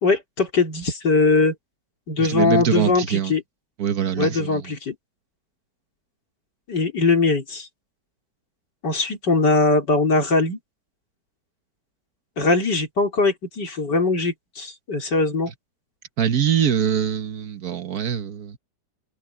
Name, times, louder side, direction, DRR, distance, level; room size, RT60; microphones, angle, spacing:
voice 1, 0.0-1.5 2.1-3.4 4.2-5.0 6.7-7.7 8.8-10.6 12.4-15.5, left 3 dB, 90° left, 4.5 m, -21 dB
voice 2, 2.2-3.3 3.8-4.7 16.2-18.6, right 8 dB, 65° right, 1.6 m, -23 dB
omnidirectional pair, 1.8 m